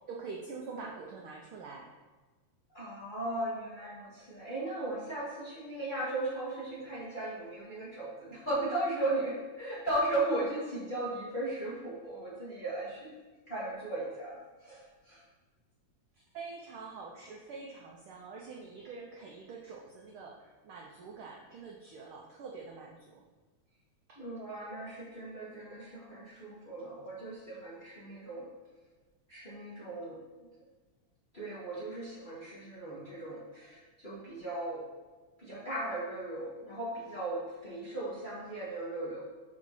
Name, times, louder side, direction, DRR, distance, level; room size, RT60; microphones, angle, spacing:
voice 1, 0.1-1.9 16.3-23.2, right 4 dB, 85° right, -1 dB, 1.1 m, -45 dB
voice 2, 2.7-13.2 13.5-15.2 24.1-28.5 29.3-30.5 31.3-34.8 35.4-39.2, right 2 dB, 30° left, -8 dB, 1.0 m, -37 dB
5.2 x 5.1 x 5.4 m, 1.3 s
omnidirectional pair, 3.3 m